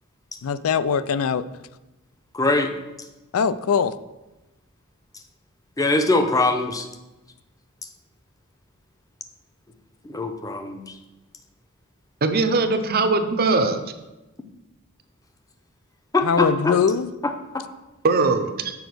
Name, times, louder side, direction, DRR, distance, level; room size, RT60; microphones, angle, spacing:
voice 1, 0.4-1.4 3.3-3.9 16.2-17.1, left 6 dB, 75° left, 14 dB, 0.4 m, -21 dB
voice 2, 2.3-2.7 5.8-6.9 10.0-11.0 16.1-16.8 17.2-17.6, left 2 dB, 15° left, 6 dB, 0.7 m, -22 dB
voice 3, 12.2-13.8 18.0-18.7, right 3 dB, 45° right, 8 dB, 0.7 m, -21 dB
7.1 x 5.0 x 6.2 m, 1.0 s
head